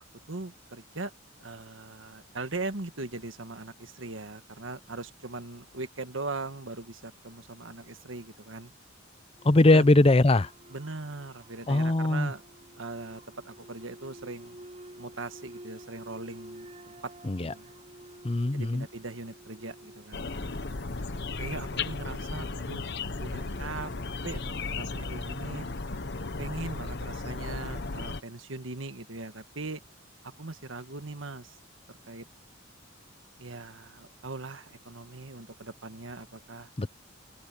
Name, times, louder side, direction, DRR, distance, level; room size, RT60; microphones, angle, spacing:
voice 1, 0.3-1.1 1.4-8.7 9.7-9.9 10.7-12.4 12.7-14.6 15.0-17.1 17.4-17.7 18.5-20.6 21.4-22.9 23.2-23.9 24.2-25.7 26.4-29.8 30.2-31.6 31.9-32.2 33.4-36.7, right 3 dB, 75° right, 1.7 m, -40 dB
sound 1, 9.3-25.9, right 1 dB, 35° right, 5.7 m, -51 dB
voice 2, 9.4-10.5 11.7-12.3 17.2-17.5 18.2-18.9 36.8-36.9, left 2 dB, 30° left, 0.6 m, -21 dB
sound 2, 20.1-28.2, left 3 dB, 60° left, 1.1 m, -35 dB
open air
head